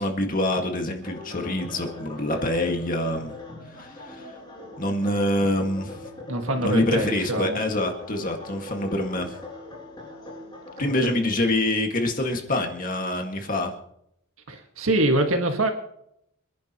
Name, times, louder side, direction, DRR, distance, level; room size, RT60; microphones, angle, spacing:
voice 1, 0.0-3.3 3.7-4.3 4.8-6.0 6.6-9.3 10.8-13.7, left 1 dB, 40° left, 3 dB, 1.9 m, -26 dB
sound 1, 1.0-11.1, left 2 dB, 20° left, 7.6 m, -41 dB
voice 2, 6.3-7.6 10.8-10.9 11.2-11.3 14.5-15.7, right 1 dB, 70° right, 4 dB, 1.8 m, -24 dB
27.5 x 10.5 x 3.0 m, 0.74 s
head